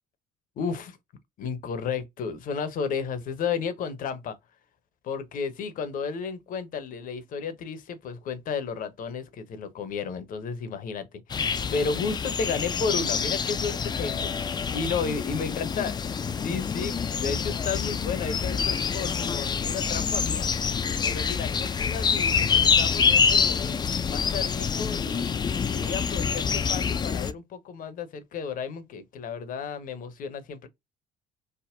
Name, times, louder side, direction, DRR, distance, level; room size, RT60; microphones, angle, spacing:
voice 1, 0.6-1.0 1.4-4.4 5.0-11.4 11.7-14.3 14.7-15.9 16.2-20.5 21.0-30.7, left 5 dB, 45° left, 0.7 m, -33 dB
sound 1, 11.3-27.3, left 6 dB, 25° left, 0.4 m, -26 dB
3.5 x 2.0 x 2.4 m
figure-of-eight pair, 55°, 19 cm